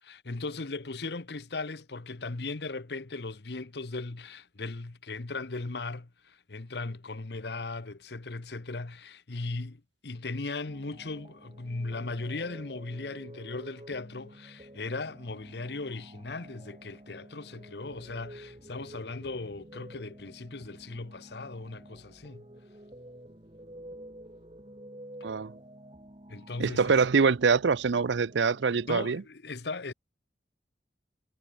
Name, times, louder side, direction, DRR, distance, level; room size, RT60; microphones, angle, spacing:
voice 1, 0.0-22.5 26.3-27.0 28.9-29.9, left 3 dB, 70° left, 1.0 m, -38 dB
sound 1, 10.6-29.2, right 1 dB, 30° right, 2.5 m, -50 dB
voice 2, 26.6-29.2, right 5 dB, 85° right, 0.6 m, -24 dB
head